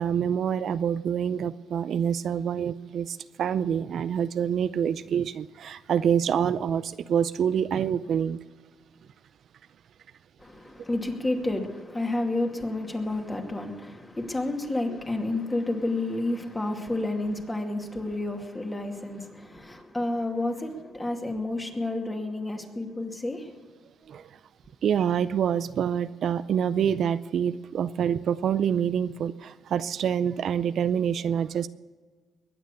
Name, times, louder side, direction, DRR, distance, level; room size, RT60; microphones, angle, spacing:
voice 1, 0.0-8.4 14.9-15.0 24.1-24.4 24.8-31.7, right 8 dB, 65° right, 0.5 m, -26 dB
voice 2, 10.4-23.5, left 2 dB, 15° left, 2.4 m, -30 dB
21.5 x 9.1 x 6.8 m
cardioid pair, 90°, 0 cm